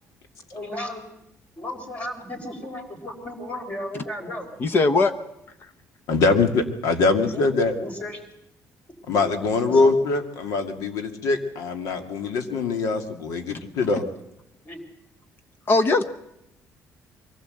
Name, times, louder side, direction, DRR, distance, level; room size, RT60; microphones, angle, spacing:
voice 1, 0.5-1.1 1.6-4.5 7.3-7.4 7.8-8.2 9.6-9.9 14.7-14.8, left 1 dB, 25° left, 6 dB, 3.8 m, -34 dB
voice 2, 4.6-5.1 13.5-13.6 15.7-16.0, left 3 dB, 40° left, 11 dB, 1.0 m, -19 dB
voice 3, 6.1-7.7 9.1-14.0, left 3 dB, 85° left, 7 dB, 2.2 m, -23 dB
23.0 x 16.5 x 7.8 m, 0.84 s
cardioid pair, 150°, 6 cm